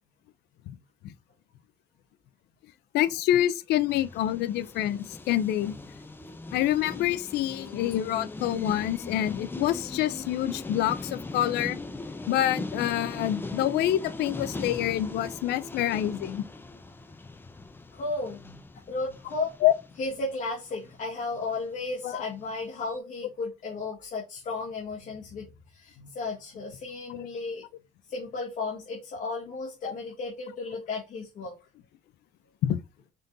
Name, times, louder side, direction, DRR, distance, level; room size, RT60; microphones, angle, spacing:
voice 1, 2.9-5.7 6.5-11.8 12.3-16.4 19.6-19.7 22.0-22.2 32.6-32.8, left 12 dB, 75° left, 0.5 m, -26 dB
sound 1, 3.9-21.2 21.5-21.8 22.1-22.2 22.4-22.6 22.9-23.0, left 2 dB, 10° left, 0.5 m, -40 dB
voice 2, 17.9-19.5 20.0-27.6 28.1-31.5, left 3 dB, 50° left, 1.6 m, -34 dB
5.0 x 3.7 x 2.7 m
cardioid pair, 110°, 17 cm